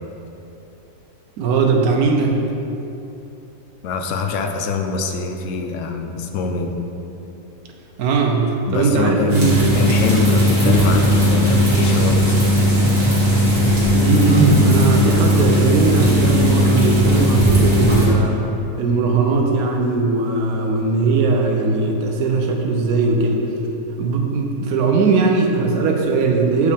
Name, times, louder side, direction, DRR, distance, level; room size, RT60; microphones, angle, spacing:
voice 1, 1.4-2.4 8.0-9.8 10.6-10.9 13.9-18.4 18.8-23.5 24.0-26.7, right 4 dB, 80° right, 2 dB, 1.2 m, -19 dB
voice 2, 3.8-6.7 8.7-12.8, left 4 dB, 65° left, 4 dB, 0.8 m, -24 dB
sound 1, 9.3-18.1, equal, 60° right, 1.8 m, -16 dB
6.9 x 4.8 x 3.4 m, 2.9 s
omnidirectional pair, 1.6 m